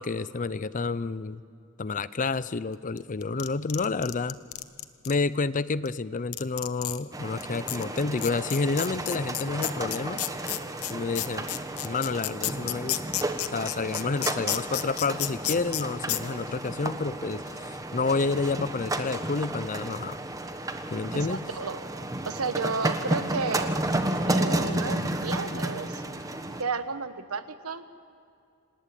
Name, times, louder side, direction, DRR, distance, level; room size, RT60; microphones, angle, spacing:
voice 1, 0.0-1.4 1.8-4.4 5.1-10.2 10.9-11.5 11.8-13.1 13.5-20.2 20.9-21.4, left 4 dB, 35° left, 17 dB, 0.5 m, -29 dB
sound 1, 3.0-5.1 5.9-6.0 6.3-7.0 7.4-7.5 7.7-15.8 16.1-16.2, left 14 dB, 80° left, 1.0 m, -31 dB
sound 2, 7.1-26.6, right 1 dB, 15° right, 1.2 m, -32 dB
voice 2, 21.1-21.8 22.3-23.8 24.3-26.0 26.6-28.0, right 4 dB, 85° right, 11 dB, 1.2 m, -32 dB
27.5 x 19.0 x 9.1 m, 2.5 s
head